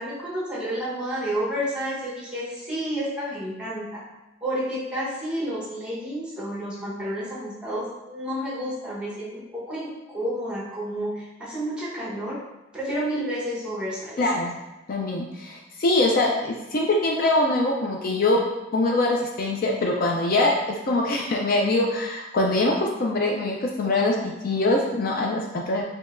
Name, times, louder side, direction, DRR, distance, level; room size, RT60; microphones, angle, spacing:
voice 1, 0.0-4.0 4.4-12.4 12.7-14.2, equal, 5° right, -7 dB, 1.0 m, -30 dB
voice 2, 14.2-14.5 14.9-18.4 18.7-25.8, left 2 dB, 45° left, 0 dB, 0.4 m, -23 dB
5.1 x 2.8 x 2.5 m, 1.0 s
head